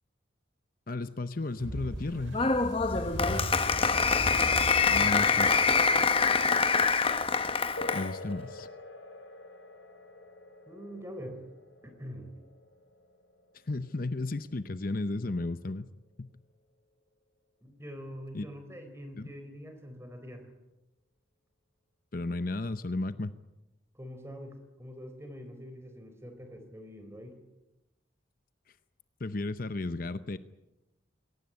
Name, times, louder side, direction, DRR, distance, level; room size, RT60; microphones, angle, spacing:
voice 1, 0.9-2.4 4.9-5.6 7.9-8.7 13.7-15.9 16.2-16.3 18.3-18.5 19.2-19.3 22.1-23.3 29.2-30.4, left 2 dB, 45° left, 12 dB, 0.7 m, -34 dB
sound 1, 1.5-6.7, equal, 75° right, 7.9 m, -38 dB
Applause, 2.3-8.1, left 5 dB, 30° left, 1.1 m, -25 dB
sound 2, 7.8-15.8, left 2 dB, 75° left, 3.7 m, -47 dB
voice 2, 10.7-11.4 11.8-12.3 17.6-20.5 23.9-27.4, equal, 15° right, 7 dB, 3.7 m, -44 dB
22.0 x 18.5 x 9.7 m, 0.97 s
head